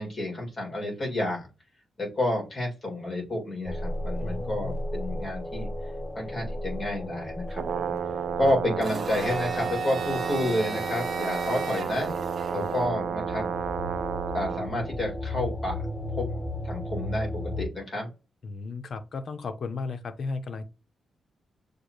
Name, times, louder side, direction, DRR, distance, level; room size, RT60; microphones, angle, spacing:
voice 1, 0.0-1.5 2.0-5.7 6.2-8.0 8.4-12.1 12.5-13.5 14.3-15.8 16.2-16.3 16.6-18.1, left 1 dB, 25° left, 2.0 m, -30 dB
sound 1, 3.6-17.6, left 1 dB, ahead, 0.6 m, -35 dB
voice 2, 4.2-4.8 8.4-8.5 12.6-12.7 18.4-20.6, left 4 dB, 50° left, 0.6 m, -35 dB
Brass instrument, 7.5-14.7, right 8 dB, 60° right, 0.3 m, -32 dB
Domestic sounds home sounds, 8.8-12.8, right 3 dB, 40° right, 1.0 m, -36 dB
6.5 x 2.4 x 3.0 m
wide cardioid pair, 160°, 0 cm